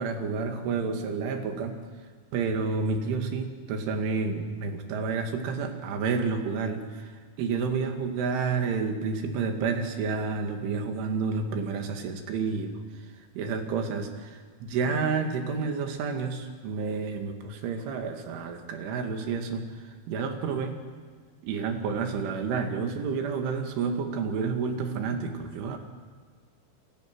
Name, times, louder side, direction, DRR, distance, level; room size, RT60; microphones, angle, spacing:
voice 1, 0.0-1.8 2.3-7.1 7.4-12.8 13.4-20.8 21.4-25.8, right 5 dB, 80° right, 5 dB, 4.5 m, -30 dB
28.0 x 25.5 x 6.2 m, 1.5 s
omnidirectional pair, 5.5 m